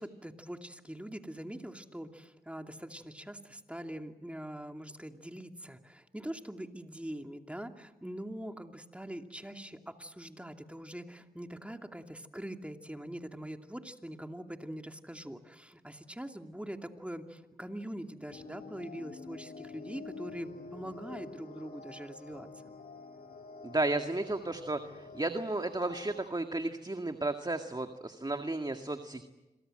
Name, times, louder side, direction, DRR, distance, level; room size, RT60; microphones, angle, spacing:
voice 1, 0.0-22.7, right 1 dB, 5° right, 5 dB, 2.6 m, -43 dB
sound 1, 18.3-26.3, left 4 dB, 70° left, 4.1 m, -48 dB
voice 2, 23.6-29.2, right 2 dB, 25° right, 6 dB, 2.0 m, -33 dB
26.5 x 23.5 x 7.8 m, 1.1 s
cardioid pair, 45°, 17 cm